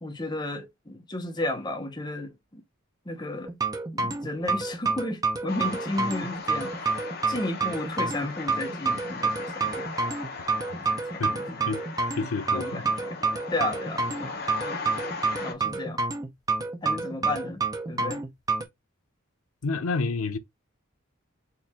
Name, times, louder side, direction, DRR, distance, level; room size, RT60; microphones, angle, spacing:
voice 1, 0.0-2.6 3.0-3.5 3.9-9.9 10.7-11.6 12.5-13.2 13.5-14.8 15.4-16.0 16.8-18.2, left 2 dB, 20° left, 0.9 m, -34 dB
sound 1, 3.5-18.6, right 4 dB, 15° right, 0.6 m, -28 dB
sound 2, 5.5-15.5, left 4 dB, 45° left, 1.0 m, -38 dB
voice 2, 12.2-12.8 19.6-20.4, left 4 dB, 90° left, 0.7 m, -29 dB
4.5 x 2.6 x 3.6 m
head